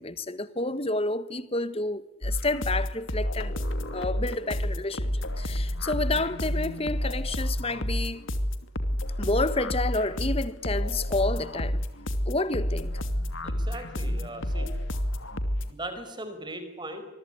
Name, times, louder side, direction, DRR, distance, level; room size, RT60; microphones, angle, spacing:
voice 1, 0.0-8.2 9.2-11.8 12.2-12.9, left 2 dB, 30° left, 1.5 m, -30 dB
sound 1, 2.2-15.7, equal, 75° left, 2.8 m, -30 dB
voice 2, 13.4-14.7 15.7-17.0, right 1 dB, 20° right, 5.1 m, -38 dB
25.5 x 23.0 x 10.0 m
head